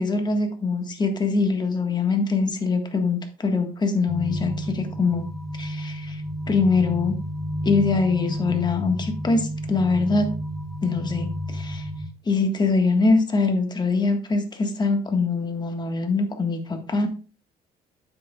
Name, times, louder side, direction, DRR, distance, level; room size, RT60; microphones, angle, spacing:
voice 1, 0.0-5.3 5.5-6.2 6.5-7.2 7.6-10.3 10.8-11.8 12.3-17.1, left 4 dB, 25° left, 5 dB, 1.5 m, -23 dB
sound 1, 4.1-12.1, equal, 5° left, 1.0 m, -31 dB
9.3 x 7.8 x 2.4 m, 0.35 s
cardioid pair, 110°, 17 cm